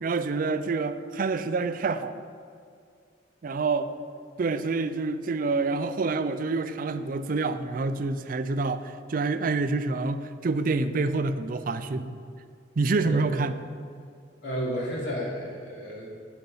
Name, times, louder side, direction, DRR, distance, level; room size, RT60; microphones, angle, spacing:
voice 1, 0.0-2.2 3.4-3.9 4.4-12.2 12.8-13.5, right 3 dB, 50° right, 12 dB, 0.4 m, -27 dB
voice 2, 14.4-16.1, equal, 70° left, -5 dB, 2.8 m, -32 dB
8.8 x 8.0 x 5.5 m, 2.2 s
head